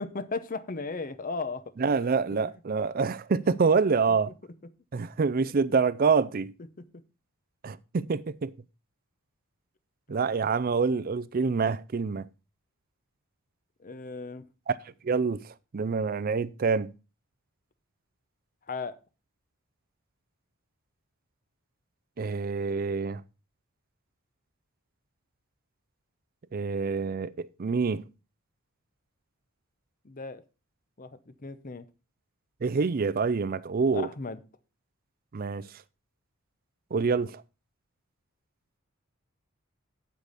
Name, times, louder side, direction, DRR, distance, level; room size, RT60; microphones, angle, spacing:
voice 1, 0.0-1.6 2.0-2.4 6.8-6.9 13.8-14.5 18.7-18.9 30.0-30.4 31.0-31.9 33.9-34.4, left 4 dB, 40° left, 0.7 m, -36 dB
voice 2, 1.8-4.3 4.9-6.5 7.6-8.5 10.1-12.3 14.7-14.8 15.0-16.9 22.2-23.2 26.5-28.0 32.6-34.1 35.3-35.7 36.9-37.4, right 5 dB, 40° right, 0.4 m, -26 dB
8.4 x 8.2 x 4.1 m
head